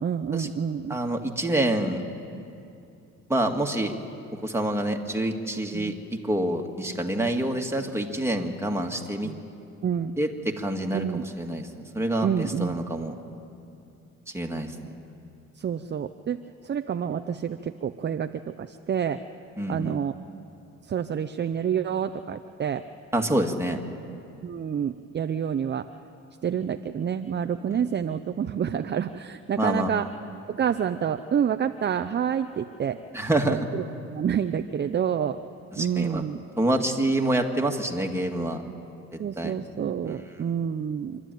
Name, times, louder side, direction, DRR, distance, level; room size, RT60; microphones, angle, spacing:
voice 1, 0.0-1.0 5.7-6.0 9.2-9.4 9.8-10.1 10.9-11.2 12.2-12.8 15.6-19.2 19.7-20.1 20.8-22.8 24.4-25.9 26.4-30.1 30.5-33.0 33.5-35.4 35.8-36.4 39.2-41.2, right 8 dB, 35° right, 9 dB, 0.6 m, -28 dB
voice 2, 0.9-2.0 3.3-4.0 4.3-9.3 10.2-10.3 10.6-13.1 14.3-14.7 19.6-20.0 23.1-23.8 27.7-27.8 29.6-29.9 33.1-33.7 35.7-36.2 36.6-38.6 39.4-39.5 40.1-40.2, right 1 dB, 10° right, 2 dB, 2.0 m, -27 dB
26.0 x 12.5 x 9.1 m, 2.7 s
cardioid pair, 90°, 30 cm